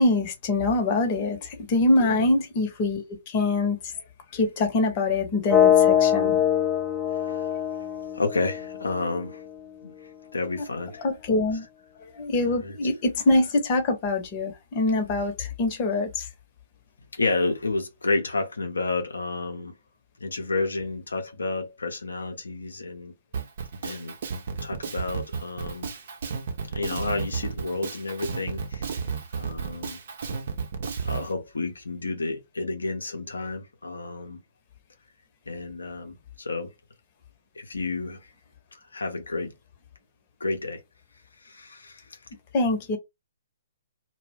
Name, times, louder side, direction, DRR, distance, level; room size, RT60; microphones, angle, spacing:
voice 1, 0.0-4.0 4.3-6.4 11.0-11.7 12.0-16.3 42.5-43.0, left 2 dB, 35° left, 0.8 m, -24 dB
voice 2, 2.0-2.3 7.1-7.6 8.1-9.5 9.8-9.9 10.3-11.0 12.4-12.7 17.1-19.7 20.2-23.1 23.8-24.1 24.6-25.9 26.7-28.9 29.3-30.0 31.0-34.4 35.5-36.7 37.5-38.3 38.7-39.5 40.4-40.8 41.4-42.2, left 3 dB, 80° left, 0.6 m, -31 dB
sound 1, 5.5-9.4, left 9 dB, 10° left, 0.4 m, -23 dB
Drum kit, 23.3-31.3, right 5 dB, 55° right, 0.7 m, -32 dB
2.2 x 2.1 x 3.3 m
figure-of-eight pair, 130°, 0 cm